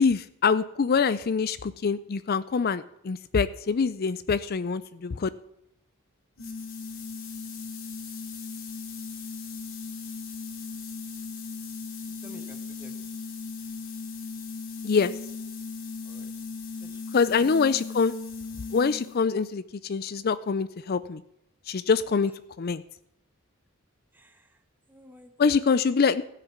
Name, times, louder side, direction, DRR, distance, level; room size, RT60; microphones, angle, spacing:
voice 1, 0.0-5.3 14.8-15.1 17.1-18.1 18.7-21.2 21.7-22.3 22.6-22.8 25.4-26.2, left 5 dB, 45° left, 15 dB, 0.4 m, -25 dB
sound 1, 6.4-19.3, left 4 dB, 65° left, 2.5 m, -38 dB
voice 2, 12.2-13.1 16.0-16.3 16.8-17.0 17.4-17.5 24.1-24.5 24.9-25.6, left 1 dB, 10° right, 6 dB, 1.4 m, -51 dB
15.5 x 6.7 x 8.6 m, 0.80 s
head